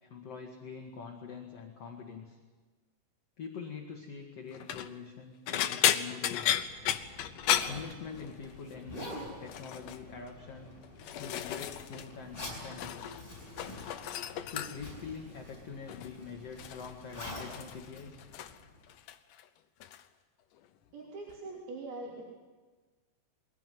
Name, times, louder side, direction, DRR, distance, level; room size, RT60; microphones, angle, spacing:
voice 1, 0.0-2.4 3.4-6.6 7.7-10.7 11.2-13.1 14.4-18.2, left 5 dB, 50° left, 2 dB, 2.4 m, -44 dB
sound 1, 4.5-4.9 5.5-8.5 8.8-9.1 9.5-10.0 10.7-12.1 12.4-13.2 13.5-15.0 15.9-16.2 16.6-18.6 18.9-19.4 19.8-20.0 21.3-21.4, left 11 dB, 70° left, 2.3 m, -34 dB
Zipper (clothing), 6.2-18.9, left 1 dB, 25° left, 7.5 m, -47 dB
voice 2, 20.9-22.2, right 2 dB, 85° right, -4 dB, 5.4 m, -42 dB
22.5 x 17.0 x 9.4 m, 1.3 s
omnidirectional pair, 4.3 m